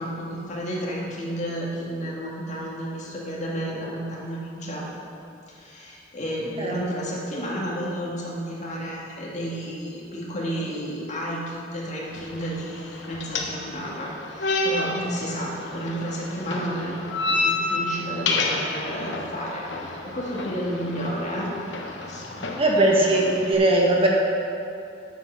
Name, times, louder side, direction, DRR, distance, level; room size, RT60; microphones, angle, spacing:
voice 1, 0.0-4.9 5.5-21.5 22.0-22.5 22.9-23.1, equal, 40° left, -4 dB, 2.0 m, -32 dB
sound 1, 12.1-23.5, left 2 dB, 65° left, 1.1 m, -30 dB
voice 2, 22.6-24.1, right 2 dB, 30° right, -2 dB, 1.2 m, -19 dB
9.0 x 7.7 x 6.0 m, 2.5 s
head